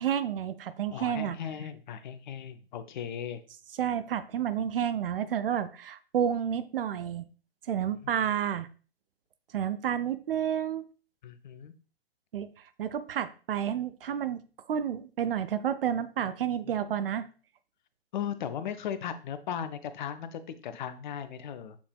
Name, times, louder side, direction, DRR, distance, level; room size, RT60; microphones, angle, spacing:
voice 1, 0.0-1.4 3.8-7.2 7.7-8.7 9.5-10.9 12.3-12.5 12.8-14.4 14.7-17.3, right 9 dB, 60° right, 13 dB, 0.5 m, -30 dB
voice 2, 0.9-3.4 7.9-8.3 11.2-11.7 16.6-17.0 18.1-21.8, left 8 dB, 50° left, 12 dB, 0.5 m, -37 dB
7.0 x 3.3 x 2.2 m, 0.37 s
figure-of-eight pair, 115°, 32 cm